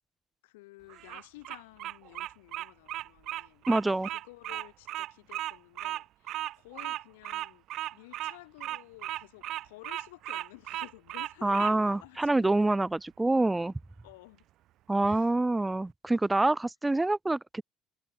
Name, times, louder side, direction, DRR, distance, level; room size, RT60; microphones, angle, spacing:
voice 1, 0.4-3.7 4.0-7.6 7.9-12.6 14.0-14.5 15.0-15.3, left 22 dB, 75° left, 7.6 m, -52 dB
Bird vocalization bird call bird song, 0.9-11.7, right 14 dB, 60° right, 1.2 m, -36 dB
voice 2, 3.7-4.1 11.4-13.7 14.9-17.6, right 2 dB, 15° right, 1.1 m, -26 dB
hypercardioid pair, 60°, 0 cm